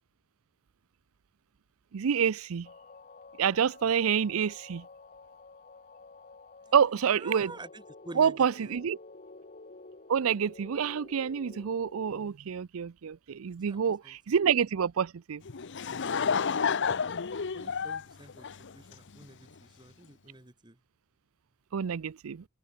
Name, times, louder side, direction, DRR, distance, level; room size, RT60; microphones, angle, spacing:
voice 1, 1.9-2.7 3.4-4.8 6.7-7.5 8.2-9.0 10.1-15.4 21.7-22.4, right 7 dB, 80° right, 0.5 m, -27 dB
sound 1, 2.6-12.3, left 3 dB, 40° left, 1.9 m, -51 dB
voice 2, 7.2-8.7 13.7-14.2 17.5-20.8, right 2 dB, 20° right, 1.9 m, -48 dB
Laughter / Crowd, 15.4-19.2, left 6 dB, 60° left, 0.8 m, -30 dB
open air
head